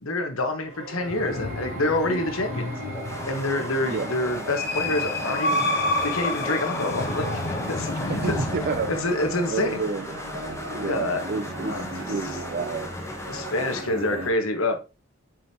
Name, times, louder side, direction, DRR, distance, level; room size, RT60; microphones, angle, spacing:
voice 1, 0.0-2.7 3.3-5.7 6.0-8.4 8.9-9.8 10.8-11.2 11.6-11.8 13.3-14.8, left 2 dB, 80° left, 1.3 m, -27 dB
sound 1, 0.6-14.3, right 1 dB, 90° right, 2.2 m, -36 dB
sound 2, 1.1-9.0, left 2 dB, 45° left, 0.7 m, -30 dB
sound 3, 2.8-13.9, left 2 dB, 15° left, 0.9 m, -36 dB
voice 2, 3.8-4.1 8.1-8.9 9.5-10.1 10.7-11.8 12.1-13.0 14.0-14.3, right 5 dB, 45° right, 0.4 m, -30 dB
7.5 x 5.2 x 2.9 m
head